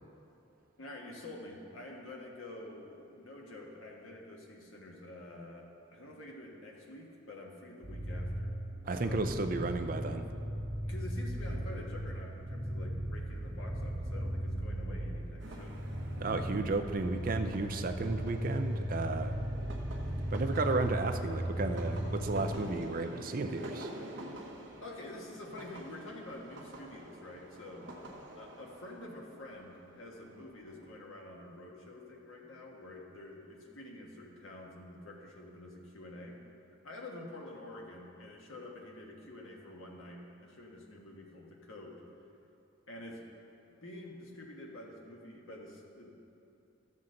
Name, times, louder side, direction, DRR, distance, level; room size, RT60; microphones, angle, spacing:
voice 1, 0.8-8.6 8.9-9.3 10.8-15.8 24.8-27.9 28.4-36.4 36.8-42.0 42.9-43.2 43.7-46.1, left 1 dB, 80° left, -1 dB, 1.4 m, -48 dB
sound 1, 7.8-22.5, equal, ahead, 1.5 m, -37 dB
voice 2, 8.9-10.3 16.2-19.4 20.3-23.9, right 3 dB, 40° right, 7 dB, 0.4 m, -33 dB
sound 2, 15.4-30.9, right 1 dB, 60° right, 1.0 m, -48 dB
13.5 x 7.3 x 3.8 m, 2.7 s
head